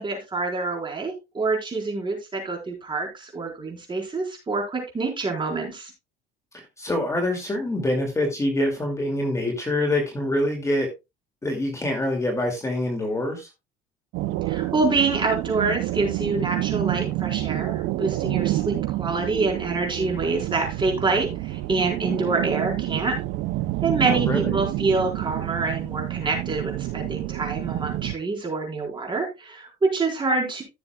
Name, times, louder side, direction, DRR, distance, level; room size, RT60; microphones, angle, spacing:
voice 1, 0.0-5.9 14.5-23.2 23.8-30.6, right 3 dB, 25° right, 1 dB, 4.3 m, -26 dB
voice 2, 6.5-10.9 11.4-13.5 24.0-24.6, left 1 dB, 15° left, 2 dB, 2.4 m, -25 dB
sound 1, 14.1-28.1, right 16 dB, 75° right, 0.6 m, -28 dB
15.0 x 7.0 x 2.3 m, 0.24 s
cardioid pair, 125°, 19 cm